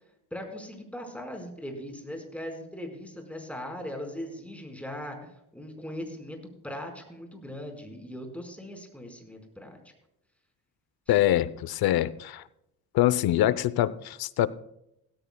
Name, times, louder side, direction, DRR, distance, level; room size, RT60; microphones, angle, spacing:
voice 1, 0.3-6.4 6.6-9.8, left 1 dB, 5° left, 3 dB, 4.8 m, -39 dB
voice 2, 11.1-12.4 12.9-14.5, left 13 dB, 75° left, 17 dB, 0.8 m, -24 dB
16.5 x 14.5 x 2.3 m, 0.81 s
cardioid pair, 85°, 37 cm